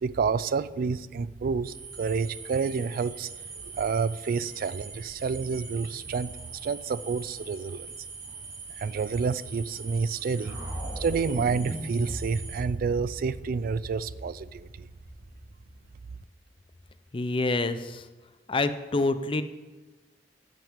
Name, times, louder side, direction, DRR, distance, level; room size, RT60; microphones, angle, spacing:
voice 1, 0.0-3.3 3.6-7.9 8.8-10.6 11.0-14.9, right 5 dB, 50° right, 18 dB, 0.3 m, -29 dB
sound 1, 1.6-12.6, right 4 dB, 80° right, 3.2 m, -43 dB
sound 2, 10.4-16.4, equal, 15° right, 3.1 m, -39 dB
voice 2, 17.1-18.1 18.5-19.4, left 2 dB, 30° left, 11 dB, 0.5 m, -27 dB
12.0 x 6.3 x 5.1 m, 1.2 s
head